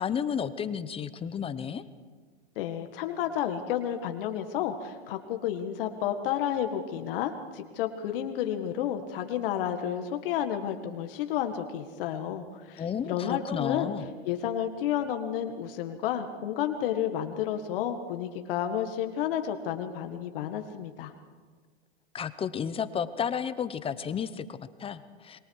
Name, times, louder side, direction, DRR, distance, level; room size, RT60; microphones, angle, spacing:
voice 1, 0.0-1.8 12.8-14.1 22.1-25.4, left 7 dB, 15° left, 13 dB, 0.9 m, -32 dB
voice 2, 2.6-13.9 14.3-21.1, left 10 dB, 60° left, 6 dB, 1.8 m, -31 dB
28.0 x 22.5 x 4.8 m, 1.5 s
hypercardioid pair, 130°, 31 cm